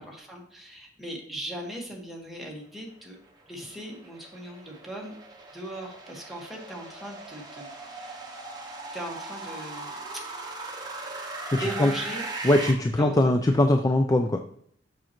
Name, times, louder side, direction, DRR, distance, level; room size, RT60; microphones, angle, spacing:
voice 1, 0.0-3.2 3.5-5.1 5.5-7.7 7.9-8.2 8.9-10.2 11.6-12.3 13.0-13.3, right 1 dB, ahead, -2 dB, 1.5 m, -38 dB
sound 1, 3.1-12.7, right 3 dB, 20° right, 1.1 m, -39 dB
voice 2, 11.5-11.9 12.4-14.4, left 1 dB, 20° left, 5 dB, 0.4 m, -21 dB
7.3 x 6.3 x 3.0 m, 0.66 s
head